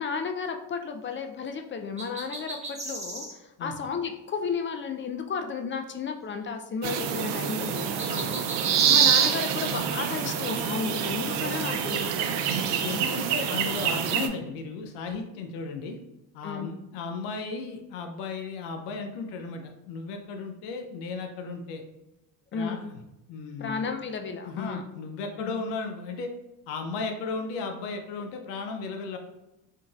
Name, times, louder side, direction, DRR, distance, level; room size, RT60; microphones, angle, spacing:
voice 1, 0.0-7.9 8.9-12.5 16.4-16.7 22.5-22.8 23.6-24.8 25.4-25.5, left 5 dB, 30° left, 5 dB, 0.4 m, -33 dB
sound 1, 2.0-3.3 8.0-9.3, right 1 dB, 15° right, 0.9 m, -37 dB
sound 2, 6.8-14.3, right 8 dB, 80° right, 0.5 m, -26 dB
voice 2, 12.8-16.0 16.3-21.8 22.5-23.0 23.3-23.9 24.4-26.3 26.7-29.2, left 4 dB, 85° left, 4 dB, 0.6 m, -35 dB
3.7 x 2.6 x 2.3 m, 0.95 s
supercardioid pair, 75°, 42 cm